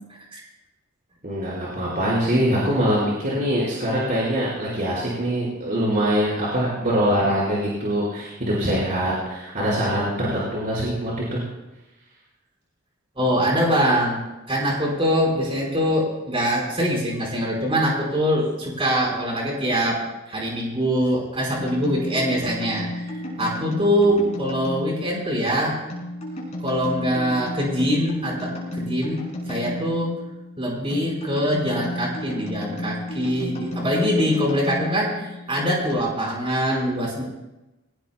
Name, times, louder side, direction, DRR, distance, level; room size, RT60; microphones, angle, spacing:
voice 1, 1.2-11.4, equal, 45° right, -8 dB, 4.8 m, -23 dB
voice 2, 13.2-20.0 20.3-25.8 26.6-29.2 29.5-30.1 30.6-37.2, equal, 25° right, -2 dB, 4.5 m, -23 dB
sound 1, 21.5-36.0, left 1 dB, 30° left, 6.3 m, -33 dB
22.5 x 17.5 x 2.2 m, 1.0 s
head